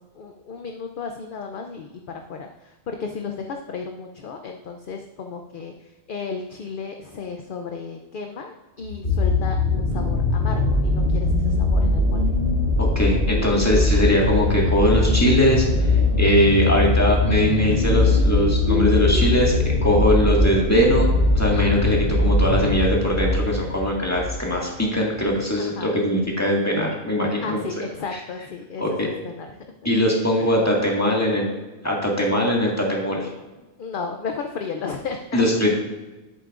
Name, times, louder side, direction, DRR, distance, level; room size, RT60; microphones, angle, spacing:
voice 1, 0.2-2.0 2.3-5.7 6.1-12.3 25.6-26.0 27.4-29.5 30.4-30.6 33.8-35.7, left 5 dB, 55° left, 4 dB, 0.7 m, -34 dB
sound 1, 8.8-24.4 25.2-25.3, left 2 dB, 80° left, 3.6 m, -21 dB
voice 2, 12.8-15.7 16.2-21.1 21.3-27.6 28.8-29.1 29.8-31.5 31.8-33.3 35.3-35.7, equal, 15° left, -3 dB, 1.9 m, -21 dB
11.0 x 8.2 x 2.5 m, 1.1 s
omnidirectional pair, 1.1 m